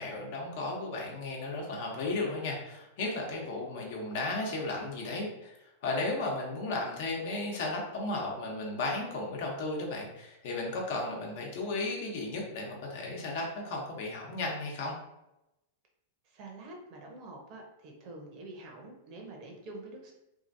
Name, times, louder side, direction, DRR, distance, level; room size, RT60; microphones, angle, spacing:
voice 1, 0.0-5.5 5.8-14.9, left 2 dB, 60° left, -1 dB, 0.9 m, -34 dB
voice 2, 16.2-20.1, right 2 dB, 45° right, 1 dB, 0.7 m, -46 dB
2.8 x 2.5 x 2.6 m, 0.89 s
hypercardioid pair, 130°, 0 cm